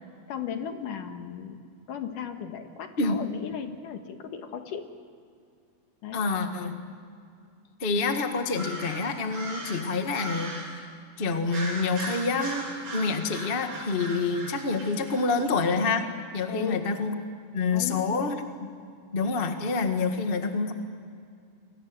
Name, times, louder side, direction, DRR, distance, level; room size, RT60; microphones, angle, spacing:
voice 1, 0.3-1.6 1.9-4.9 6.0-6.2 16.5-16.8 17.7-18.3, left 8 dB, 65° left, 6 dB, 2.9 m, -36 dB
voice 2, 6.1-6.8 7.8-10.9 11.2-16.0 16.3-17.1 17.5-18.4 19.1-20.7, left 4 dB, 45° left, 5 dB, 0.7 m, -27 dB
sound 1, 8.5-10.8 11.5-15.5, right 2 dB, 55° right, 9.4 m, -38 dB
29.5 x 23.5 x 8.0 m, 2.3 s
omnidirectional pair, 4.4 m